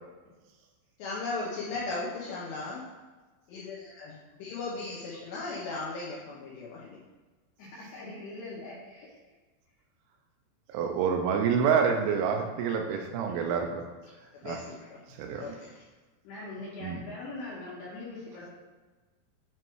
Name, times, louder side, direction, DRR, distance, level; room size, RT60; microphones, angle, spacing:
voice 1, 1.0-2.9 3.5-7.0 14.3-15.0 15.3-15.8, left 3 dB, 90° left, -6 dB, 2.1 m, -37 dB
voice 2, 7.6-9.4 14.1-14.2 15.5-15.6 16.2-18.5, left 2 dB, 70° left, -6 dB, 2.9 m, -42 dB
voice 3, 10.7-13.8 14.4-14.6 15.1-15.6 16.8-17.0, right 6 dB, 85° right, 3 dB, 3.1 m, -27 dB
9.0 x 3.1 x 4.6 m, 1.3 s
omnidirectional pair, 5.4 m